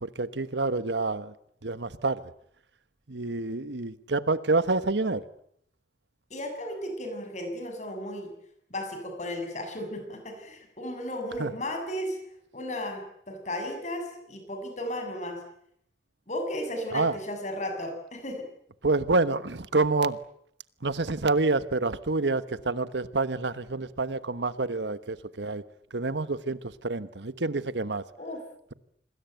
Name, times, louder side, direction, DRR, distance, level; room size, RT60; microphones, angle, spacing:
voice 1, 0.0-1.3 1.6-2.2 3.1-5.2 11.4-11.5 16.9-17.1 18.8-20.2 20.8-25.6 25.9-28.0, right 3 dB, 85° right, 1.3 m, -27 dB
voice 2, 6.3-8.3 8.7-12.2 12.5-15.4 16.3-18.5 28.2-28.4, left 1 dB, 40° left, 7.4 m, -34 dB
27.0 x 21.0 x 9.2 m
head